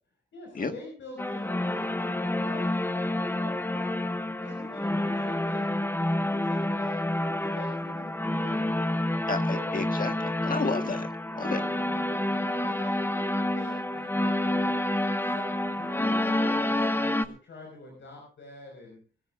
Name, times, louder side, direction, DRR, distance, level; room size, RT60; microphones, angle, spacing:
voice 1, 0.3-4.1 4.4-5.8 6.1-8.9 9.5-9.7 11.4-11.8 12.0-14.8 15.2-19.0, left 2 dB, 80° left, -1 dB, 5.8 m, -45 dB
sound 1, 1.2-17.3, left 1 dB, 10° left, 0.8 m, -28 dB
voice 2, 9.3-11.1 11.4-11.6, left 4 dB, 45° left, 6 dB, 1.7 m, -31 dB
24.0 x 13.5 x 2.6 m, 0.41 s
cardioid pair, 85°, 19 cm